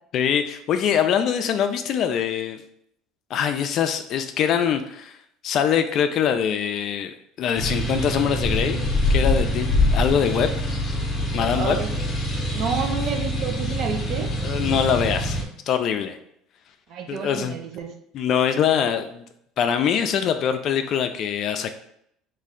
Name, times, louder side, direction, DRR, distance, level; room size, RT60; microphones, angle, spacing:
voice 1, 0.1-2.6 3.3-5.2 5.4-8.8 9.1-10.7 11.3-11.8 14.4-15.4 15.7-16.2 17.1-17.6 18.1-19.2 19.6-21.7, left 8 dB, 50° left, 8 dB, 0.3 m, -23 dB
sound 1, 7.6-15.4, left 1 dB, 30° left, 0.7 m, -24 dB
voice 2, 11.5-11.9 12.5-14.3 16.9-17.9, right 5 dB, 55° right, 4 dB, 0.6 m, -29 dB
3.1 x 2.5 x 3.7 m, 0.71 s
cardioid pair, 125°, 0 cm